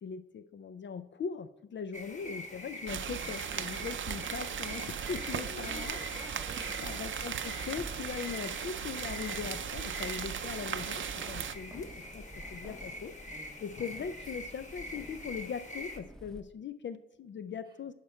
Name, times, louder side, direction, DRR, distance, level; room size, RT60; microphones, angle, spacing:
voice 1, 0.0-6.0 6.8-13.2 13.6-17.9, left 6 dB, 60° left, 12 dB, 0.4 m, -40 dB
sound 1, 1.9-16.0, left 1 dB, 35° left, 1.1 m, -45 dB
sound 2, 2.9-11.6, right 8 dB, 65° right, 0.5 m, -37 dB
voice 2, 5.3-6.9 13.3-13.7, right 1 dB, 20° right, 2 dB, 1.7 m, -48 dB
Keys jangling, 5.9-16.4, equal, 5° left, 0.7 m, -52 dB
11.5 x 5.1 x 4.3 m, 0.91 s
wide cardioid pair, 155°, 21 cm